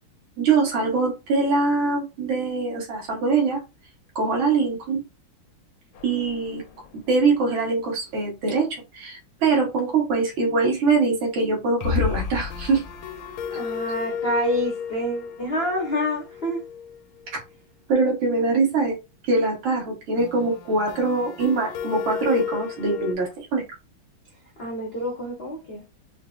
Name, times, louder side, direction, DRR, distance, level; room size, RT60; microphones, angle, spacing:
voice 1, 0.4-3.6 4.2-5.0 6.0-6.6 6.9-12.8 17.9-19.0 19.3-23.6, right 4 dB, 70° right, 2.1 m, -23 dB
sound 1, 6.0-7.2 7.4-7.5 7.8-7.9 11.8-17.5 20.2-23.2, left 7 dB, 80° left, 1.4 m, -32 dB
voice 2, 13.5-16.6 24.6-25.8, equal, 60° left, 0.6 m, -27 dB
4.9 x 2.0 x 2.4 m
omnidirectional pair, 2.4 m